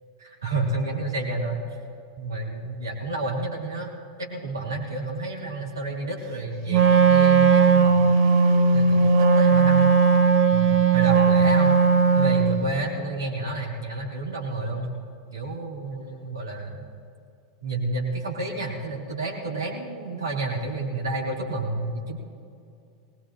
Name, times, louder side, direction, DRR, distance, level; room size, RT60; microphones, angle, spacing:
voice 1, 0.2-1.7 2.2-3.9 4.2-8.1 8.7-9.9 10.5-11.8 12.1-14.9 15.3-16.9 17.6-22.2, right 2 dB, 75° right, -3 dB, 2.8 m, -30 dB
Wind instrument woodwind instrument, 6.7-12.6, right 5 dB, 50° right, 0.9 m, -17 dB
21.0 x 18.5 x 3.0 m, 2.5 s
figure-of-eight pair, 85°, 2 cm